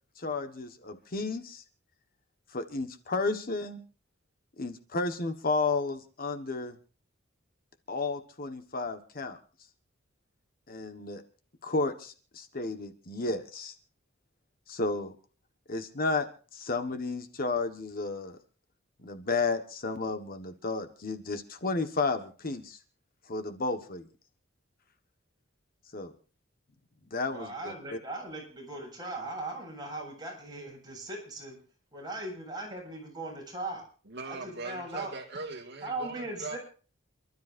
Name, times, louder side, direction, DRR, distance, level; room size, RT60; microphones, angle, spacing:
voice 1, 0.2-1.6 2.5-3.8 4.6-6.8 7.9-9.4 10.7-11.2 11.6-13.7 14.7-15.1 15.7-18.4 19.0-22.8 23.3-24.0 25.9-26.1 27.1-28.0, left 3 dB, 45° left, 8 dB, 1.4 m, -32 dB
voice 2, 27.3-31.6 31.9-33.8 34.3-35.1 35.8-36.6, right 2 dB, 20° right, 0 dB, 7.7 m, -39 dB
voice 3, 34.1-36.6, right 3 dB, 60° right, 2 dB, 2.2 m, -40 dB
28.5 x 13.0 x 2.6 m, 0.39 s
head